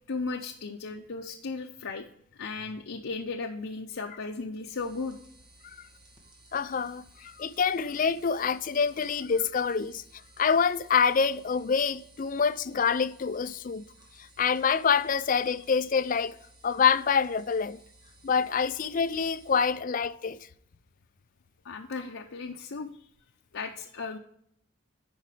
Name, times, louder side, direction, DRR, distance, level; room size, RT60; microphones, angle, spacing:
voice 1, 0.1-2.0 2.4-5.2 21.6-23.0 23.5-24.2, left 4 dB, 75° left, 0.7 m, -36 dB
sound 1, 4.6-19.7, right 2 dB, 20° right, 1.9 m, -57 dB
voice 2, 6.5-10.0 10.4-13.8 14.2-16.4 16.6-17.8 18.2-20.5, left 6 dB, 40° left, 0.4 m, -26 dB
10.0 x 5.0 x 4.9 m
head